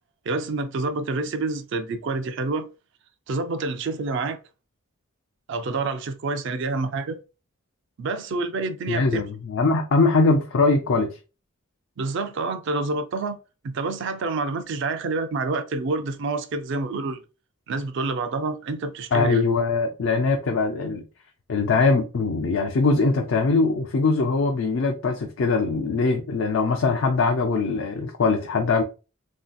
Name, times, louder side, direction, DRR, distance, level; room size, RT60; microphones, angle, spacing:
voice 1, 0.3-2.7 3.3-4.4 5.5-7.2 8.0-9.2 12.0-13.4 13.6-17.2 17.7-19.4, right 3 dB, 60° right, 0.4 m, -28 dB
voice 2, 8.9-11.1 19.1-21.0 21.5-28.8, left 3 dB, 65° left, 0.4 m, -22 dB
3.2 x 2.7 x 2.2 m
head